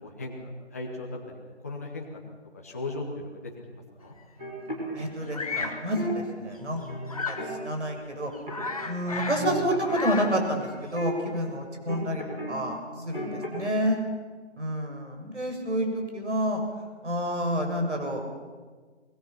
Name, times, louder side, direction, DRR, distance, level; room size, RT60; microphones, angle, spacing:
voice 1, 0.0-2.2 2.5-4.2 11.8-12.1, left 2 dB, 15° left, -1 dB, 1.3 m, -37 dB
sound 1, 4.4-6.1 6.6-7.8 8.5-8.8 9.1-12.6 12.8-13.7, equal, 5° right, 1.2 m, -37 dB
voice 2, 4.9-6.8 7.2-8.3 8.8-12.2 12.5-14.0 14.6-16.6 17.0-18.2, equal, 75° right, 3 dB, 6.7 m, -29 dB
Bird vocalization bird call bird song, 5.3-5.8 7.1-7.5 8.0-8.1 8.3-9.5 9.8-10.4, left 4 dB, 30° left, 1.5 m, -33 dB
24.5 x 21.0 x 6.0 m, 1.5 s
figure-of-eight pair, 170°, 35 cm